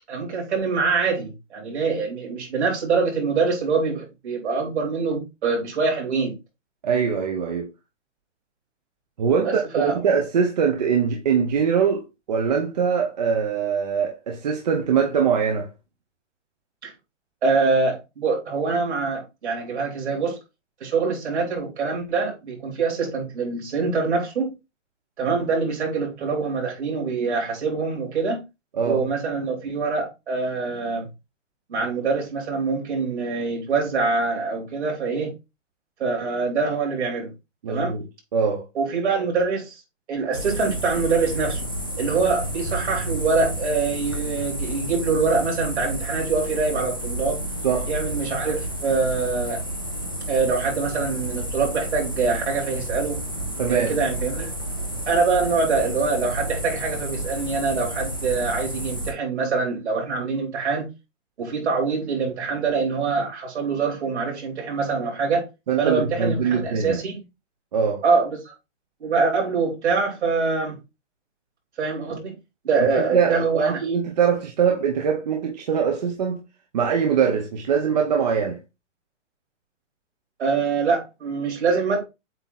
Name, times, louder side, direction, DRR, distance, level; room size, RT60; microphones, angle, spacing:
voice 1, 0.1-6.4 9.4-10.0 16.8-16.9 17.4-20.4 20.8-24.5 25.2-28.4 28.8-31.1 31.7-35.3 36.0-37.3 37.7-37.9 38.7-39.8 40.1-41.7 42.0-47.4 47.9-49.6 50.3-53.2 53.7-54.5 55.1-60.9 61.4-65.4 65.8-67.2 68.0-68.5 69.0-70.8 71.8-72.4 72.6-73.8 80.4-82.0, right 4 dB, 60° right, 3.7 m, -24 dB
voice 2, 6.8-7.7 9.2-15.7 28.8-29.0 37.6-38.0 38.3-38.6 47.6-47.9 53.6-53.9 65.7-67.0 67.7-68.0 73.0-76.4 76.7-78.6, right 6 dB, 35° right, 0.9 m, -22 dB
sound 1, 40.3-59.1, right 1 dB, 20° left, 0.4 m, -30 dB
7.9 x 2.9 x 4.1 m
hypercardioid pair, 170°, 38 cm